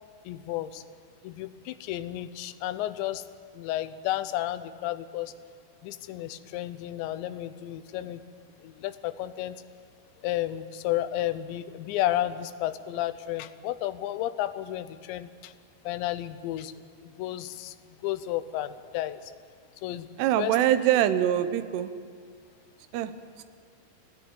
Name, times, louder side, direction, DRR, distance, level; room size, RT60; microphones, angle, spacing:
voice 1, 0.3-0.8 1.2-3.2 3.5-5.3 5.8-8.2 8.6-9.6 10.2-15.5 15.8-16.7 17.0-19.3 19.8-20.1 20.4-20.6, left 13 dB, 85° left, 13 dB, 3.1 m, -32 dB
voice 2, 20.2-21.9 22.9-23.1 23.4-23.5, right 11 dB, 75° right, 11 dB, 2.9 m, -24 dB
24.5 x 16.5 x 9.3 m, 2.1 s
omnidirectional pair, 5.1 m